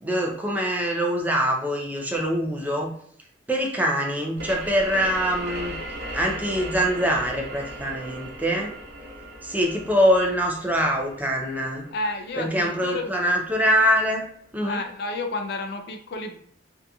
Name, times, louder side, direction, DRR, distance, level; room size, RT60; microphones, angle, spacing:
voice 1, 0.0-2.9 3.5-5.8 6.1-8.7 9.4-11.9 12.4-14.3 14.5-14.8, equal, 10° right, 0 dB, 0.4 m, -24 dB
sound 1, 4.4-13.7, right 1 dB, 65° right, 0.7 m, -38 dB
voice 2, 11.9-13.1 14.6-16.4, left 2 dB, 65° left, 5 dB, 0.4 m, -31 dB
2.7 x 2.5 x 2.3 m, 0.63 s
head